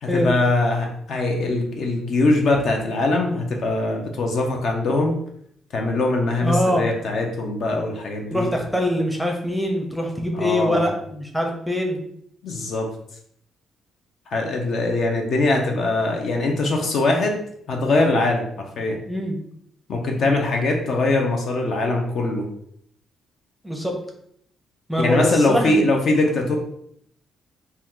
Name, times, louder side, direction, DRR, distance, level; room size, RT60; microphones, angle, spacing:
voice 1, 0.0-5.1 5.7-8.5 10.3-10.9 12.4-12.9 14.3-17.4 17.7-19.0 19.9-22.5 25.0-26.6, left 2 dB, 65° left, 1 dB, 0.6 m, -22 dB
voice 2, 6.4-6.9 8.3-12.0 19.1-19.4 23.6-24.0 24.9-25.8, equal, 5° left, 1 dB, 0.6 m, -23 dB
2.7 x 2.3 x 3.5 m, 0.69 s
cardioid pair, 90°, 0 cm